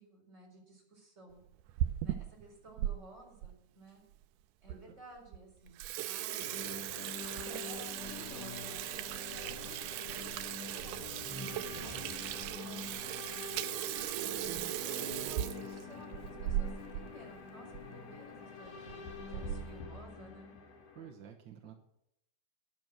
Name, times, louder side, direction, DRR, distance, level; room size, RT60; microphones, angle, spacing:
voice 1, 0.0-1.4 2.0-4.0 4.6-5.8 6.0-8.8 9.1-11.2 11.6-13.4 14.1-14.3 14.7-20.5, right 2 dB, 20° right, -1 dB, 4.7 m, -55 dB
Water tap faucet / Sink (filling or washing), 1.5-2.9 3.4-3.5 4.2-4.3 4.7-4.8 5.2-5.4 5.7-17.1 17.4-17.5 17.7-17.9 18.7-18.9 19.3-19.8, right 13 dB, 85° right, 2.2 m, -38 dB
sound 1, 6.4-21.1, left 5 dB, 80° left, 3.3 m, -46 dB
sound 2, 6.4-6.5 7.4-7.9 8.2-12.5 13.1-13.3, left 1 dB, 5° left, 7.3 m, -52 dB
voice 2, 11.4-11.8 14.4-16.0 20.9-21.7, right 8 dB, 60° right, 2 dB, 1.2 m, -52 dB
12.0 x 11.0 x 6.3 m, 0.78 s
omnidirectional pair, 3.6 m